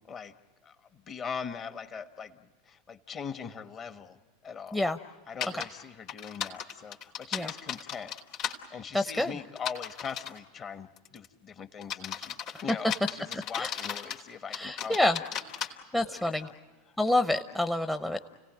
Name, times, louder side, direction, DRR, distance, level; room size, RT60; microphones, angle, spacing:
voice 1, 0.6-2.4 2.7-4.2 4.4-4.8 5.3-8.1 8.7-15.0 15.6-16.5 16.9-17.0, left 6 dB, 35° left, 9 dB, 1.5 m, -41 dB
sound 1, 5.4-5.7 6.1-8.6 9.6-10.4 11.0-11.3 11.8-14.2 14.5-15.7, left 8 dB, 55° left, 2.9 m, -35 dB
voice 2, 8.9-9.3 13.6-13.7 14.5-15.2 15.9-16.5 17.0-18.3, left 1 dB, 10° left, 6 dB, 0.9 m, -27 dB
30.0 x 18.0 x 9.0 m, 1.5 s
hypercardioid pair, 95°, 0 cm